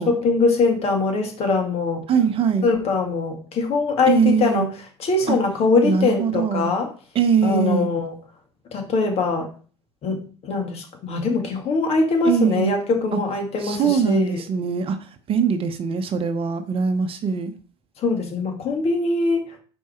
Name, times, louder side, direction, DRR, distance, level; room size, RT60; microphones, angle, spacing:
voice 1, 0.1-2.1 2.6-4.7 5.0-6.9 7.4-8.1 8.7-9.5 10.0-14.4 18.0-19.4, left 3 dB, 50° left, 3 dB, 2.0 m, -22 dB
voice 2, 2.1-2.7 4.1-4.7 5.3-5.4 5.8-6.7 7.1-7.9 12.2-12.7 13.1-13.2 13.6-15.0 15.3-17.5, right 6 dB, 45° right, 9 dB, 0.9 m, -21 dB
5.3 x 4.8 x 4.4 m, 0.40 s
hypercardioid pair, 75°, 13 cm